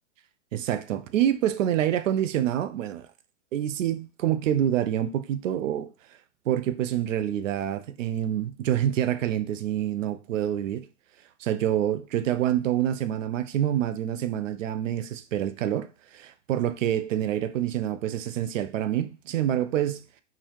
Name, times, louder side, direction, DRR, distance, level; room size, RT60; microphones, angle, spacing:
voice 1, 0.5-3.1 3.5-5.9 6.5-10.9 11.4-20.0, right 11 dB, 80° right, 0.5 m, -27 dB
3.8 x 2.7 x 3.0 m
hypercardioid pair, 170°, 38 cm